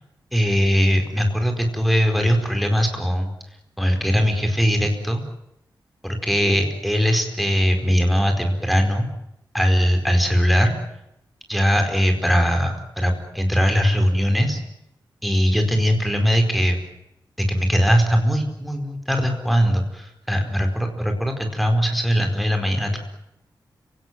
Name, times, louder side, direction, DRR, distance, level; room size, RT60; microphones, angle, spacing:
voice 1, 0.3-3.3 3.8-5.2 6.0-9.1 9.5-10.8 11.5-14.6 15.2-16.8 17.4-23.0, equal, ahead, 5 dB, 4.6 m, -20 dB
30.0 x 18.0 x 9.4 m, 0.82 s
wide cardioid pair, 160°, 8 cm